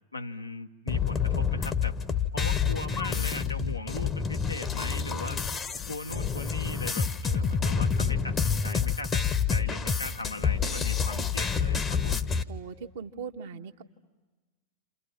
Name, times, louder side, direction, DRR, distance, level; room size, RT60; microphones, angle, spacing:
voice 1, 0.1-1.9 2.3-5.4 5.9-12.3, left 2 dB, 85° left, 6 dB, 0.9 m, -38 dB
sound 1, 0.9-12.4, left 6 dB, 20° left, 0.9 m, -28 dB
voice 2, 2.8-3.3 12.5-13.8, right 6 dB, 55° right, 5 dB, 1.3 m, -40 dB
29.0 x 28.5 x 5.9 m, 1.2 s
figure-of-eight pair, 90°, 0 cm